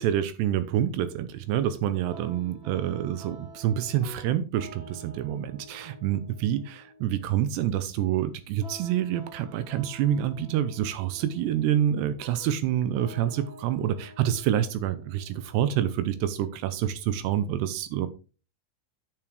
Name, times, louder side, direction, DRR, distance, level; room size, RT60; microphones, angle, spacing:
voice 1, 0.0-18.1, right 11 dB, 80° right, 12 dB, 2.6 m, -27 dB
sound 1, 2.1-17.0, right 1 dB, 50° right, 4.5 m, -50 dB
10.5 x 7.2 x 3.3 m, 0.33 s
omnidirectional pair, 5.5 m